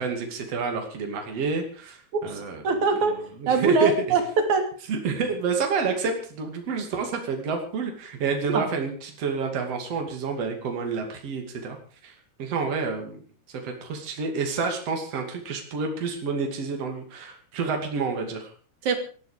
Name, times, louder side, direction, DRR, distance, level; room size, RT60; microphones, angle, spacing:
voice 1, 0.0-3.9 4.9-11.8 12.0-12.1 12.4-13.2 13.6-18.5, right 5 dB, 55° right, 3 dB, 3.6 m, -29 dB
voice 2, 2.1-4.7 8.5-8.7 18.8-19.0, right 4 dB, 75° right, 6 dB, 4.1 m, -23 dB
18.5 x 13.5 x 5.0 m, 0.41 s
omnidirectional pair, 3.4 m